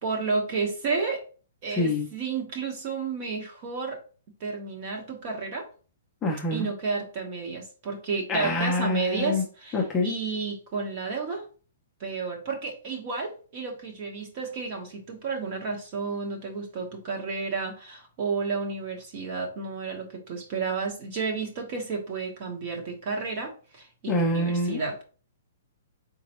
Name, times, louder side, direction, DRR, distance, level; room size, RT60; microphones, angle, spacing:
voice 1, 0.0-1.2 1.6-4.0 4.4-5.7 6.5-11.5 12.0-25.0, right 4 dB, 35° right, 3 dB, 1.1 m, -31 dB
voice 2, 1.7-2.1 6.2-6.7 8.3-9.4 9.7-10.1 24.1-24.8, left 2 dB, 10° left, -1 dB, 0.6 m, -26 dB
4.4 x 3.8 x 3.0 m, 0.38 s
hypercardioid pair, 170°, 0 cm